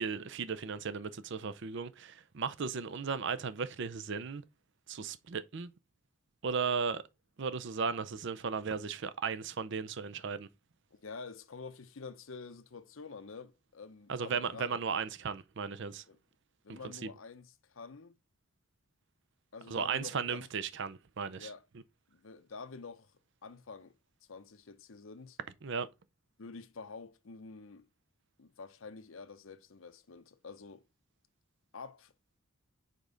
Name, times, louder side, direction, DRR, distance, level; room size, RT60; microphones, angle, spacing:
voice 1, 0.0-4.4 4.9-5.7 6.4-7.0 7.4-10.5 14.1-16.0 16.7-17.1 19.7-21.5 25.6-25.9, right 5 dB, 55° right, 0.5 m, -36 dB
voice 2, 10.9-14.8 16.1-16.2 16.6-18.2 19.5-20.4 21.3-21.6 22.1-23.1 23.4-23.9 24.3-25.4 26.4-27.9 28.4-30.8 31.7-32.1, left 4 dB, 65° left, 0.7 m, -48 dB
5.2 x 5.0 x 3.9 m
head